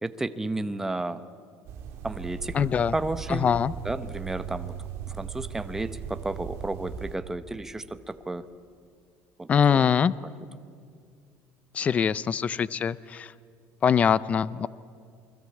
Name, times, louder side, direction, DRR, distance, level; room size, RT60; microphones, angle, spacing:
voice 1, 0.0-1.2 2.0-2.6 2.9-3.5 3.8-4.8 5.1-8.4 9.4-9.9, right 2 dB, 10° right, 11 dB, 0.8 m, -32 dB
sound 1, 1.7-7.2, right 8 dB, 55° right, 3.0 m, -38 dB
voice 2, 2.5-2.9 3.3-3.7 9.5-10.1 11.7-13.3 13.8-14.7, left 7 dB, 25° left, 18 dB, 0.6 m, -23 dB
28.5 x 21.5 x 8.5 m, 2.3 s
cardioid pair, 150°, 5 cm